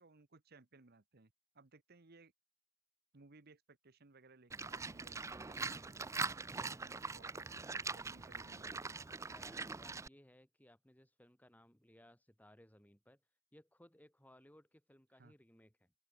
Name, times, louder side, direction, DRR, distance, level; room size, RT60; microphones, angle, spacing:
voice 1, 0.0-2.3 3.1-5.2 5.5-8.7 15.2-15.3, right 3 dB, 55° right, 1.2 m, -63 dB
Livestock farm animals working animals, 4.5-10.1, right 4 dB, 15° right, 0.4 m, -42 dB
voice 2, 9.2-13.2 13.5-15.9, left 1 dB, 10° left, 3.6 m, -63 dB
open air
head